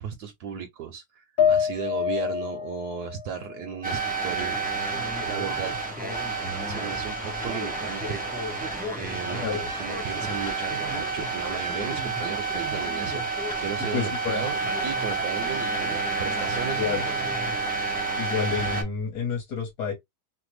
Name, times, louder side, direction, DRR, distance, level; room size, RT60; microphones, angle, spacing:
voice 1, 0.0-4.6 5.2-5.8 6.7-8.3 9.0-9.4 9.8-16.9, right 8 dB, 70° right, 1.0 m, -35 dB
sound 1, 1.4-4.8 5.2-6.2, left 8 dB, 40° left, 1.0 m, -29 dB
sound 2, 3.8-18.8, right 3 dB, 10° right, 0.4 m, -29 dB
voice 2, 13.9-14.4 16.8-17.0 18.2-19.9, left 6 dB, 55° left, 1.5 m, -29 dB
3.3 x 2.1 x 3.1 m
omnidirectional pair, 2.0 m